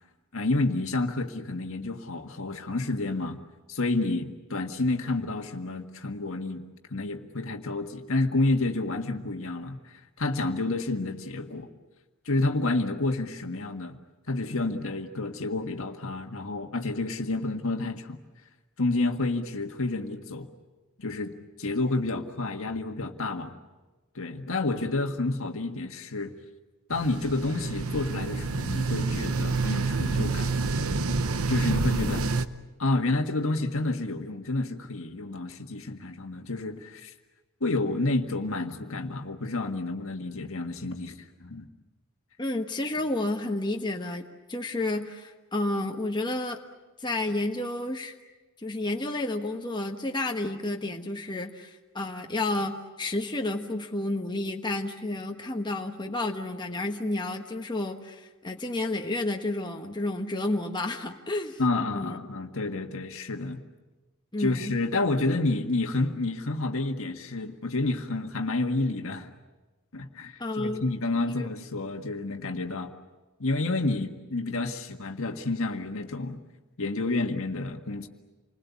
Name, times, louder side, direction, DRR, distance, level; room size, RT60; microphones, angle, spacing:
voice 1, 0.3-3.4 3.7-6.6 6.9-11.7 12.3-14.0 14.3-18.2 18.8-20.5 21.0-23.5 24.2-26.3 26.9-30.5 31.5-32.2 32.8-37.1 37.6-41.7 61.6-63.6 64.4-69.3 69.9-72.9 73.4-76.4 76.8-78.1, left 2 dB, 65° left, 5 dB, 1.8 m, -29 dB
sound 1, 26.9-32.5, right 3 dB, 75° right, 1.0 m, -28 dB
voice 2, 42.4-46.6 47.0-48.1 48.6-61.6 61.9-62.2 64.3-64.8 70.4-70.8 71.3-71.5, left 2 dB, 20° left, 2 dB, 1.4 m, -31 dB
29.0 x 21.0 x 8.4 m, 1.2 s
head